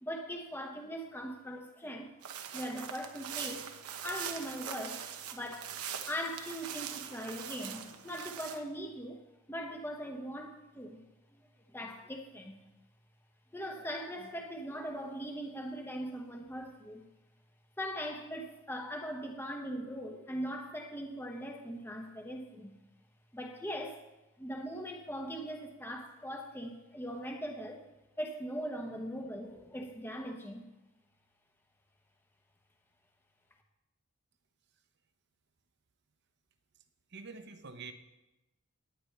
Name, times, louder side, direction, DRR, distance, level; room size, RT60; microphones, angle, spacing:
voice 1, 0.0-2.1 2.5-3.7 4.0-5.0 5.3-5.8 6.1-9.2 9.5-11.0 11.3-11.4 11.7-12.6 13.5-17.0 17.8-22.8 23.3-24.0 24.4-27.8 28.2-30.7, equal, 10° left, 2 dB, 0.9 m, -40 dB
sound 1, 2.2-8.6, right 8 dB, 90° right, 1.0 m, -42 dB
voice 2, 37.1-37.9, right 4 dB, 50° right, 8 dB, 0.9 m, -46 dB
18.5 x 9.5 x 3.3 m, 1.0 s
head